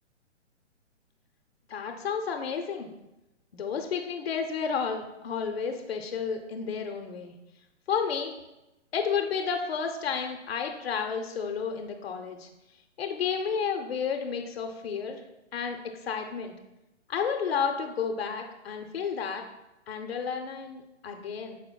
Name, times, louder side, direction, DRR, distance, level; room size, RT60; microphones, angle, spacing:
voice 1, 1.7-2.9 3.5-7.3 7.9-8.3 8.9-12.5 13.0-15.2 15.5-16.5 17.1-19.4 19.9-21.6, left 6 dB, 55° left, 4 dB, 0.6 m, -31 dB
7.4 x 5.7 x 2.2 m, 0.95 s
hypercardioid pair, 175°, 36 cm